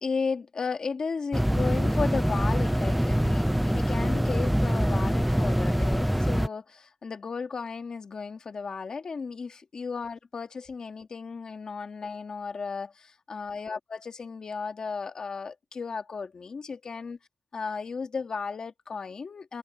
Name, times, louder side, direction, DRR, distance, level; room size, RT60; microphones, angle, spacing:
voice 1, 0.0-17.2 17.5-19.6, left 5 dB, 30° left, 2.1 m, -34 dB
sound 1, 1.3-6.5, equal, ahead, 0.7 m, -24 dB
wide cardioid pair, 175°, 2 cm